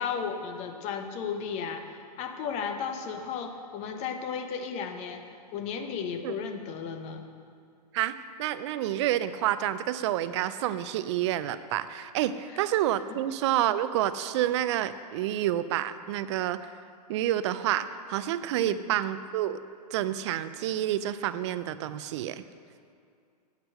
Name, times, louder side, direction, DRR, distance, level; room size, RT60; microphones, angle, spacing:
voice 1, 0.0-7.3 12.5-12.6 13.1-13.2 18.6-18.8, left 6 dB, 30° left, 6 dB, 1.0 m, -34 dB
voice 2, 7.9-16.7 17.1-19.6 19.9-22.4, right 12 dB, 45° right, 13 dB, 0.5 m, -29 dB
8.2 x 8.0 x 6.4 m, 2.3 s
hypercardioid pair, 125°, 21 cm